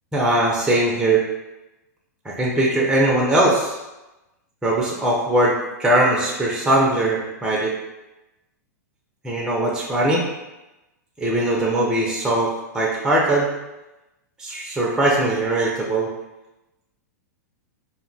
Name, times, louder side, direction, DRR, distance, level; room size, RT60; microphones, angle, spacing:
voice 1, 0.1-1.2 2.2-3.8 4.6-7.7 9.2-10.2 11.2-13.5 14.4-16.1, right 1 dB, 5° right, -3 dB, 0.5 m, -20 dB
2.3 x 2.2 x 3.9 m, 0.99 s
hypercardioid pair, 120°, 9 cm